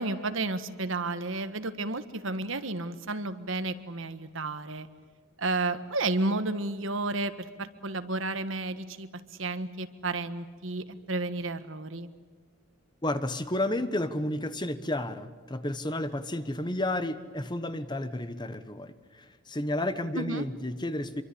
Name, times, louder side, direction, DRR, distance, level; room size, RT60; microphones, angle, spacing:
voice 1, 0.0-4.9 5.4-9.1 9.4-12.1 20.1-20.4, right 2 dB, 65° right, 11 dB, 1.5 m, -32 dB
voice 2, 13.0-21.2, left 1 dB, 20° left, 11 dB, 1.1 m, -32 dB
26.5 x 24.0 x 8.6 m, 1.5 s
head